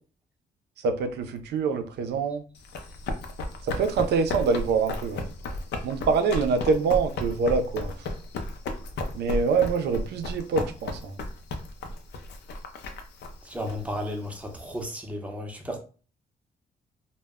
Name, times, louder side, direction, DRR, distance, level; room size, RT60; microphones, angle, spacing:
voice 1, 0.8-2.4 3.6-5.3 5.8-7.9 9.1-11.2, right 5 dB, 75° right, 0.4 m, -25 dB
Run, 2.6-14.8, left 2 dB, 80° left, 0.5 m, -34 dB
voice 2, 13.4-15.8, equal, 10° right, 0.6 m, -34 dB
2.1 x 2.0 x 3.4 m
cardioid pair, 105°, 17 cm